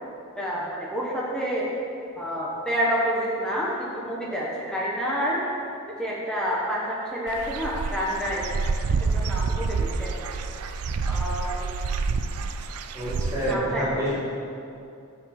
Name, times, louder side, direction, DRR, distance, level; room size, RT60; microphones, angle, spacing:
voice 1, 0.4-1.7 2.2-5.4 6.0-8.5 9.0-10.1 11.1-11.6 13.4-14.1, equal, 5° left, -6 dB, 1.2 m, -28 dB
Dog / Bird, 7.3-13.5, right 4 dB, 90° right, 0.5 m, -28 dB
voice 2, 12.9-14.1, right 1 dB, 15° right, -10 dB, 2.1 m, -27 dB
7.9 x 7.0 x 5.9 m, 2.6 s
head